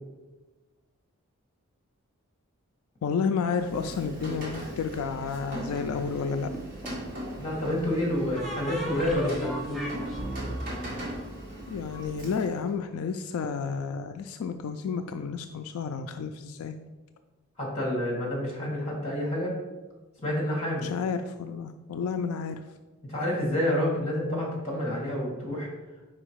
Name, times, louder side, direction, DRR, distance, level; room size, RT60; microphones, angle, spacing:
voice 1, 3.0-6.5 11.7-16.8 20.8-22.6, left 5 dB, 80° left, 7 dB, 0.3 m, -31 dB
Rain, 3.4-12.7, right 1 dB, 40° right, 1.6 m, -39 dB
sound 1, 6.2-7.1 8.4-12.0, right 1 dB, ahead, 0.7 m, -36 dB
voice 2, 7.4-10.0 17.6-19.5 20.2-20.9 23.1-25.7, left 1 dB, 25° left, -3 dB, 2.0 m, -28 dB
4.9 x 4.5 x 4.5 m, 1.2 s
head